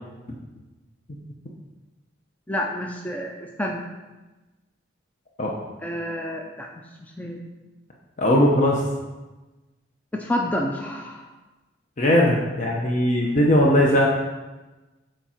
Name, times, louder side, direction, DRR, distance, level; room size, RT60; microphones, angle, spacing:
voice 1, 2.5-3.8 5.8-6.7 7.0-7.4 10.1-11.2, left 1 dB, 10° left, 0 dB, 0.4 m, -29 dB
voice 2, 8.2-8.8 12.0-14.1, left 1 dB, 40° left, -2 dB, 0.7 m, -19 dB
7.3 x 4.5 x 4.4 m, 1.2 s
head